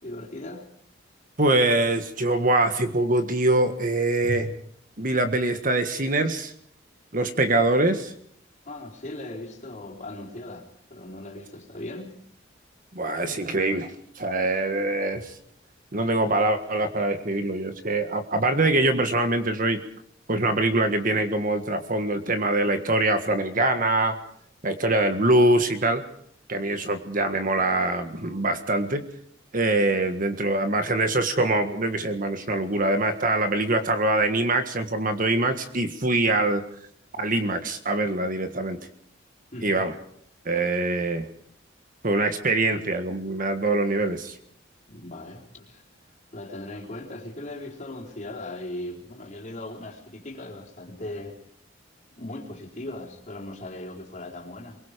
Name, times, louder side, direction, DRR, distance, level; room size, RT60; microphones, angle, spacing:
voice 1, 0.0-0.7 8.6-12.2 39.5-39.8 44.9-45.8 46.3-51.4 52.2-54.8, left 1 dB, 40° left, -1 dB, 4.2 m, -38 dB
voice 2, 1.4-4.5 5.0-6.5 7.1-8.1 12.9-15.3 15.9-19.8 20.3-24.2 24.6-26.0 26.5-29.0 29.5-36.6 37.2-38.8 39.6-39.9 40.4-41.3 42.0-44.3, right 2 dB, 45° right, 8 dB, 1.6 m, -24 dB
23.5 x 22.5 x 5.1 m, 0.65 s
head